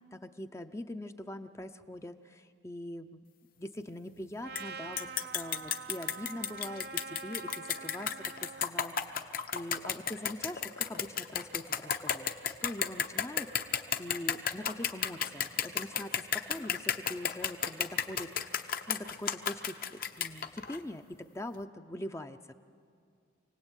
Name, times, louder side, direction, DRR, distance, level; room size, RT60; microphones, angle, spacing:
voice 1, 0.1-3.2 3.6-5.1 5.3-12.3 12.6-22.5, left 1 dB, 15° left, 8 dB, 0.6 m, -43 dB
Trumpet, 4.4-8.7, right 5 dB, 55° right, 0.8 m, -45 dB
sound 1, 4.6-4.7 5.0-20.8, left 8 dB, 50° left, 1.0 m, -33 dB
26.5 x 18.5 x 9.0 m, 2.3 s
head